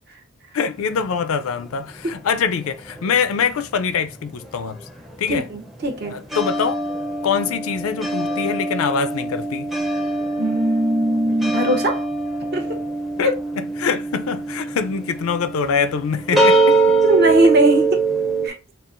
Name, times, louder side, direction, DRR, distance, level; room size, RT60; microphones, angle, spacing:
voice 1, 0.5-4.8 5.2-5.5 6.1-6.8 7.2-9.7 13.2-13.3 13.6-16.6 16.9-17.0, left 6 dB, 70° left, 0.4 m, -24 dB
sound 1, 0.8-3.4 3.7-18.5, right 3 dB, ahead, 0.5 m, -23 dB
voice 2, 5.3-6.2 10.4-12.1 12.5-12.8 13.2-13.3 16.3-16.4 17.0-18.1 18.4-18.6, right 1 dB, 45° right, 0.7 m, -20 dB
5.4 x 2.4 x 2.5 m
head